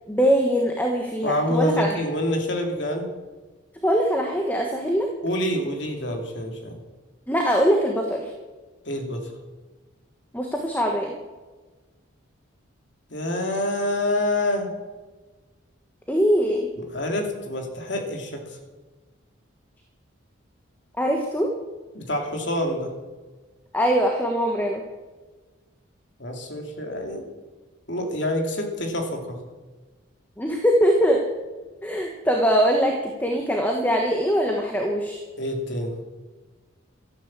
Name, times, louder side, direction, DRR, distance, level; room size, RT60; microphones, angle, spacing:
voice 1, 0.1-2.0 3.8-5.1 7.3-8.3 10.3-11.2 16.1-16.7 21.0-21.5 23.7-24.8 30.4-31.2 31.8-35.2, equal, 10° left, 2 dB, 1.3 m, -22 dB
voice 2, 1.2-3.1 5.2-6.8 8.9-9.3 13.1-14.7 16.9-18.4 21.9-22.9 26.2-27.3 27.9-29.4 35.4-35.9, left 1 dB, 60° left, 3 dB, 2.7 m, -27 dB
13.5 x 11.5 x 7.4 m, 1.3 s
head